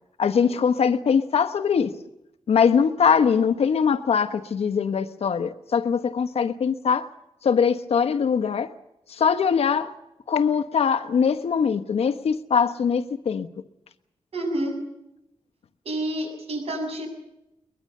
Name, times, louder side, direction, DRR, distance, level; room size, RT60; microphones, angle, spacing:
voice 1, 0.2-1.9 2.5-7.1 7.4-8.7 9.1-9.9 10.3-13.5, left 6 dB, 75° left, 1.2 m, -22 dB
voice 2, 14.3-14.8 15.8-17.1, right 1 dB, 75° right, 7.6 m, -28 dB
22.0 x 21.0 x 6.7 m
wide cardioid pair, 155°, 10 cm